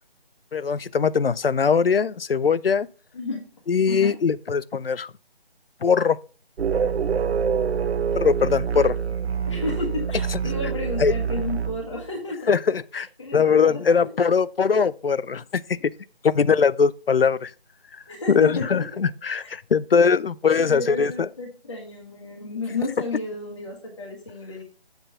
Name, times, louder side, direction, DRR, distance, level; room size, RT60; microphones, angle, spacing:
voice 1, 0.5-2.9 3.7-5.1 5.8-6.2 8.1-9.0 11.0-11.1 12.5-13.1 13.3-15.9 16.2-17.5 18.3-21.3, left 6 dB, 65° left, 0.4 m, -21 dB
sound 1, 6.6-12.1, right 7 dB, 90° right, 0.5 m, -26 dB
voice 2, 9.5-12.5 13.2-14.1 15.7-15.8 18.1-18.8 19.4-19.5 20.6-24.6, left 3 dB, 30° left, 1.4 m, -32 dB
7.9 x 4.4 x 5.4 m
figure-of-eight pair, 160°, 31 cm